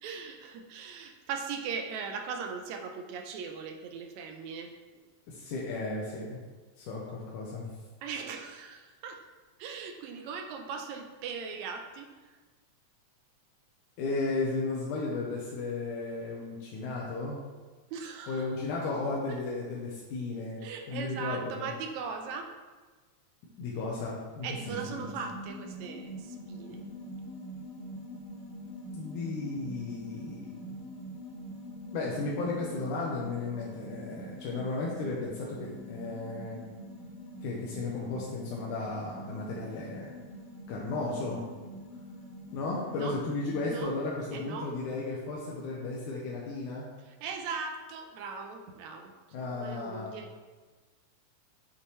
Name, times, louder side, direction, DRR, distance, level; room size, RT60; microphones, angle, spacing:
voice 1, 0.0-4.7 8.0-9.2 9.6-12.1 17.9-18.5 19.3-19.4 20.6-22.6 24.4-26.9 42.9-43.2 43.7-43.9 44.3-44.8 47.1-50.3, right 5 dB, 75° right, 5 dB, 1.8 m, -39 dB
voice 2, 5.3-6.4 6.8-7.8 14.0-17.4 18.3-20.6 20.9-21.7 23.6-25.1 28.9-30.7 31.9-36.6 37.4-40.1 40.7-41.4 42.5-46.9 49.3-50.2, left 3 dB, 85° left, -4 dB, 2.4 m, -34 dB
sound 1, 24.5-43.8, equal, 50° left, 1.3 m, -44 dB
8.4 x 5.6 x 3.1 m, 1.3 s
omnidirectional pair, 3.5 m